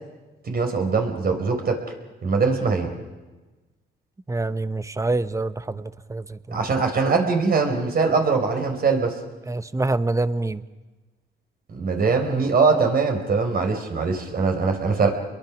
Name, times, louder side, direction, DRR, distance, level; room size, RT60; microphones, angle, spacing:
voice 1, 0.4-1.8 2.2-2.9 6.5-9.1 11.7-15.1, right 4 dB, 50° right, 4 dB, 4.3 m, -22 dB
voice 2, 4.3-6.6 9.5-10.6, right 2 dB, 15° right, 13 dB, 1.0 m, -26 dB
29.0 x 22.5 x 6.2 m, 1.2 s
cardioid pair, 90°, 20 cm